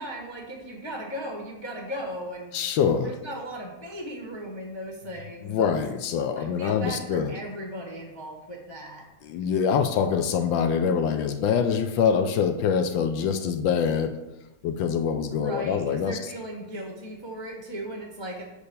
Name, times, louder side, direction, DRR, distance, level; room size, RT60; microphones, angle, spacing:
voice 1, 0.0-2.5 3.0-5.7 6.4-9.1 15.3-18.4, right 1 dB, 20° left, 0 dB, 0.7 m, -37 dB
voice 2, 2.5-3.1 5.4-7.3 9.2-14.2 14.6-16.2, left 7 dB, 75° left, 8 dB, 1.3 m, -24 dB
6.9 x 4.5 x 6.7 m, 0.98 s
omnidirectional pair, 2.2 m